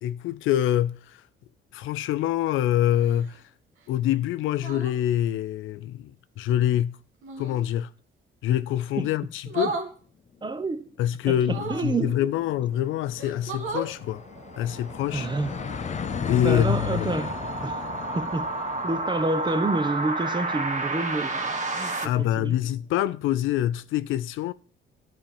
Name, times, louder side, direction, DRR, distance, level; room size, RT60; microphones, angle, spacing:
voice 1, 0.0-1.2 1.7-3.4 3.9-6.1 6.4-7.0 7.4-7.9 8.4-9.8 11.0-14.2 14.6-15.3 16.2-17.1 22.0-24.5, left 12 dB, 85° left, 0.5 m, -25 dB
sound 1, 2.9-3.4 4.6-5.0 7.2-7.6 9.5-9.9 11.4-11.9 12.7-12.8 13.2-13.9 15.6-15.8, right 3 dB, 80° right, 1.6 m, -34 dB
voice 2, 10.4-10.9 11.3-12.2 15.1-15.5 16.4-17.4 17.6-17.8 18.1-18.5 18.8-22.6, right 2 dB, 20° right, 0.9 m, -28 dB
sound 2, 10.5-10.6 10.9-11.0 11.2-22.7, left 7 dB, 35° left, 0.5 m, -37 dB
sound 3, 13.4-22.0, right 2 dB, 40° right, 1.3 m, -32 dB
10.5 x 4.4 x 7.1 m
cardioid pair, 90°, 20 cm